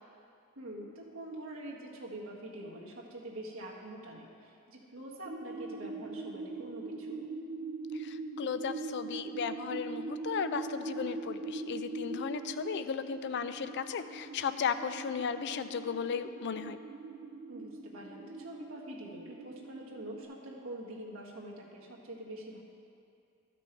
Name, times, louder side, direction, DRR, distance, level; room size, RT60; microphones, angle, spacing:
voice 1, 0.5-7.2 17.5-22.6, right 1 dB, 75° right, -3 dB, 1.6 m, -45 dB
sound 1, 5.3-20.3, right 3 dB, 60° right, 0.7 m, -42 dB
voice 2, 7.9-16.8, left 6 dB, 55° left, 11 dB, 0.4 m, -35 dB
13.0 x 6.1 x 4.5 m, 2.5 s
head